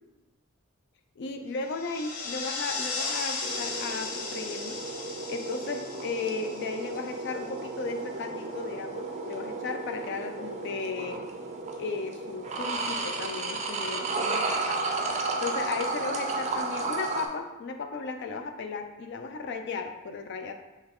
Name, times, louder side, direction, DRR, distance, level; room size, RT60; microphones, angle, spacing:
voice 1, 1.2-4.8 5.3-11.3 11.8-20.5, left 4 dB, 50° left, 6 dB, 0.3 m, -35 dB
sound 1, 1.6-7.5, left 4 dB, 75° left, 0.8 m, -36 dB
sound 2, 3.4-17.3, right 3 dB, 30° right, 0.4 m, -33 dB
5.4 x 2.3 x 3.5 m, 1.1 s
head